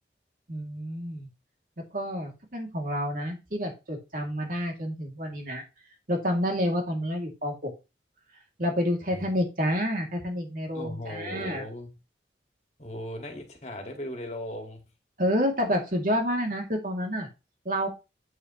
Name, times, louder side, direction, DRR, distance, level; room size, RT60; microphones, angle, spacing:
voice 1, 0.5-1.3 1.9-5.6 6.1-7.7 8.6-11.6 15.2-17.3 17.6-17.9, equal, 50° right, 2.8 m, -29 dB
voice 2, 10.7-12.0 12.8-14.8, left 1 dB, 40° left, 2.1 m, -38 dB
8.9 x 6.3 x 3.2 m
head